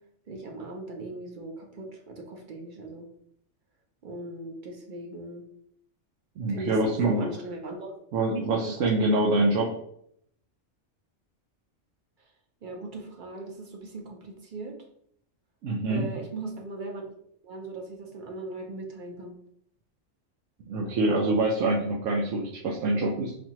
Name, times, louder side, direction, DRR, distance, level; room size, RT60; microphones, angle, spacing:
voice 1, 0.3-3.1 4.0-5.4 6.5-8.0 8.3-8.7 12.6-14.8 15.9-17.1 17.4-19.3, right 2 dB, 50° right, 1 dB, 0.7 m, -39 dB
voice 2, 6.4-7.3 8.1-9.7 15.6-16.1 20.7-23.3, right 2 dB, 85° right, -1 dB, 1.0 m, -25 dB
4.0 x 2.7 x 2.9 m, 0.69 s
omnidirectional pair, 1.3 m